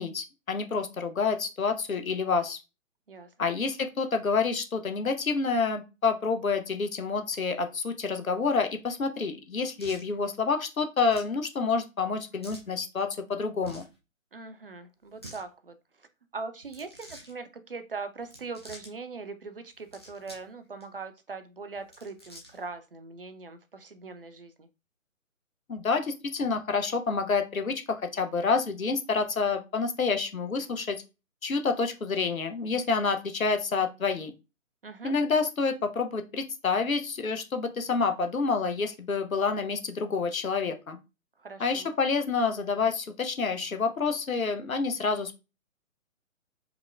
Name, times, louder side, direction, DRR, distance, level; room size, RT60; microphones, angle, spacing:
voice 1, 0.0-2.6 3.4-13.8 25.7-31.0 31.4-34.3 35.0-41.0 41.6-45.4, left 4 dB, 80° left, 7 dB, 0.7 m, -28 dB
sound 1, 9.8-10.1 11.1-11.3 12.4-12.7 13.5-13.9 15.0-15.4 16.6-17.3 18.2-18.9 19.7-20.5 20.8-20.9 21.7-22.7, right 1 dB, 20° left, 0.4 m, -48 dB
voice 2, 14.3-16.1 16.3-24.7 34.8-35.1 41.4-41.9, right 4 dB, 45° right, 9 dB, 0.4 m, -41 dB
4.7 x 2.1 x 2.4 m, 0.27 s
figure-of-eight pair, 135°, 41 cm